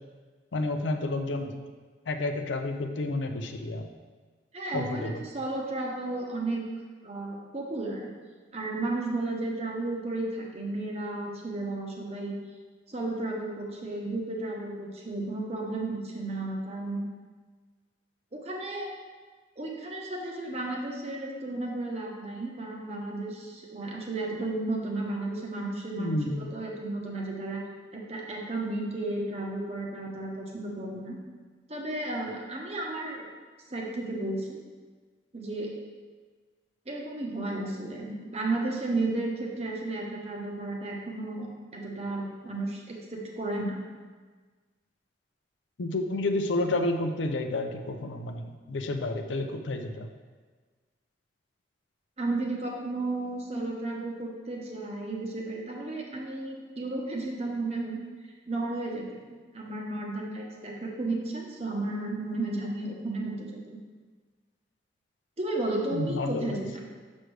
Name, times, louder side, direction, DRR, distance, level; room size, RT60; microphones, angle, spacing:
voice 1, 0.5-1.5 2.1-3.9 4.7-5.2 26.0-26.5 45.8-50.1 65.9-66.6, left 2 dB, 85° left, 6 dB, 0.6 m, -30 dB
voice 2, 4.5-6.6 7.0-8.1 8.5-12.3 12.9-17.1 18.3-18.9 19.6-27.6 27.9-31.1 31.7-33.3 33.7-34.6 35.3-35.7 36.9-43.8 52.2-58.0 58.5-59.0 59.5-63.8 65.4-66.7, right 2 dB, 35° right, -1 dB, 0.9 m, -33 dB
6.4 x 6.2 x 3.3 m, 1.4 s
head